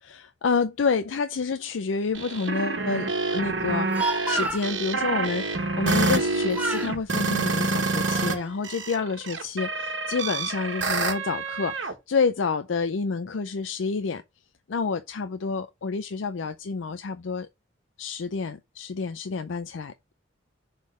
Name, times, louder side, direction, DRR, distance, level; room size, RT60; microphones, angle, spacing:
voice 1, 0.0-14.2 14.7-17.5 18.0-20.1, left 4 dB, 80° left, 0.5 m, -29 dB
sound 1, 2.1-8.3 8.6-11.9, right 3 dB, 75° right, 1.5 m, -27 dB
Speech, 3.7-4.7 6.0-6.3 6.5-6.9 7.6-8.5, right 2 dB, 10° right, 1.1 m, -31 dB
6.3 x 3.8 x 5.4 m
head